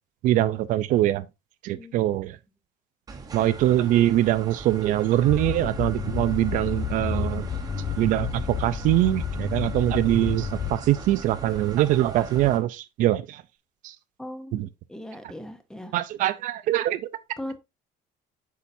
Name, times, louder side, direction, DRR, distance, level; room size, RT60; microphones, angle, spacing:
voice 1, 0.2-1.2 1.6-2.4 3.3-7.5 8.0-13.4 13.8-13.9 14.5-14.7 15.9-17.1, right 14 dB, 55° right, 0.5 m, -23 dB
sound 1, 3.1-12.6, right 3 dB, 25° right, 1.2 m, -40 dB
sound 2, 5.3-11.1, left 8 dB, 20° left, 0.4 m, -31 dB
voice 2, 14.2-15.9 17.4-17.6, left 1 dB, 5° left, 0.8 m, -38 dB
8.4 x 5.7 x 2.6 m
cardioid pair, 170°, 16 cm